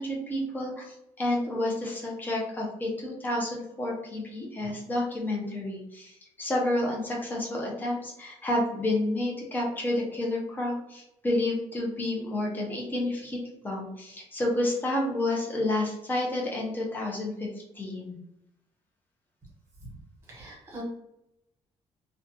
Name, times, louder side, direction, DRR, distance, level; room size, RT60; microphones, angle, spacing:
voice 1, 0.0-13.4 13.6-17.5 17.7-18.2, left 1 dB, 15° left, -2 dB, 0.6 m, -30 dB
voice 2, 20.3-20.8, right 1 dB, 25° right, -3 dB, 1.1 m, -43 dB
2.5 x 2.2 x 2.8 m, 0.82 s
cardioid pair, 160°, 11 cm